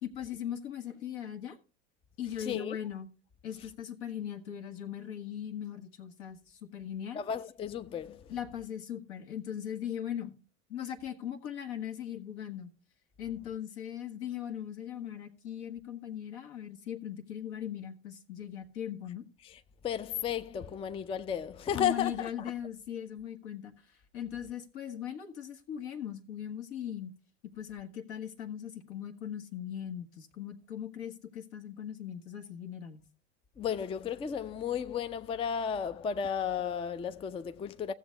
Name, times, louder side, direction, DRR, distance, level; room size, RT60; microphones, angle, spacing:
voice 1, 0.0-1.6 2.2-3.1 3.4-7.2 8.3-10.3 10.7-12.7 13.2-19.2 21.7-23.7 24.1-27.1 27.5-33.0, left 10 dB, 70° left, 1.5 m, -39 dB
voice 2, 2.4-2.8 7.1-8.3 19.4-22.3 33.6-37.9, left 8 dB, 15° left, 0.4 m, -34 dB
15.0 x 7.2 x 3.2 m
hypercardioid pair, 75°, 35 cm